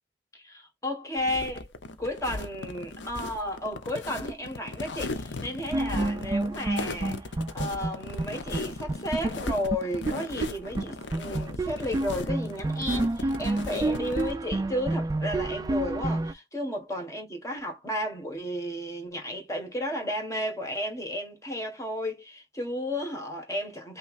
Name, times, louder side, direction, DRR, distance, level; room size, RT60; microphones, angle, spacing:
voice 1, 0.3-1.7 2.0-24.0, left 1 dB, 20° left, 1.5 m, -33 dB
sound 1, 1.2-14.3, left 3 dB, 90° left, 0.7 m, -38 dB
sound 2, 5.7-8.3 8.5-8.6 8.9-10.5 10.8-10.9 11.1-16.3, right 2 dB, 20° right, 0.3 m, -29 dB
5.6 x 3.1 x 2.5 m
head